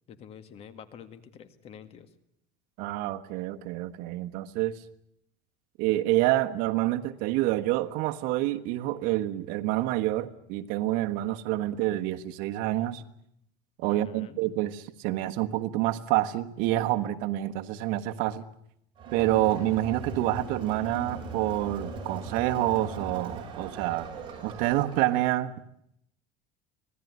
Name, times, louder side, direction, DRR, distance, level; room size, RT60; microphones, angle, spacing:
voice 1, 0.1-2.1 13.8-14.4, left 8 dB, 40° left, 12 dB, 2.0 m, -47 dB
voice 2, 2.8-4.8 5.8-13.0 13.8-18.4 19.1-24.1 24.4-25.5, right 15 dB, 65° right, 8 dB, 1.4 m, -27 dB
Crowd, 19.0-25.3, right 3 dB, 35° right, 6.5 m, -39 dB
25.5 x 17.5 x 9.5 m, 0.74 s
cardioid pair, 140°, 15 cm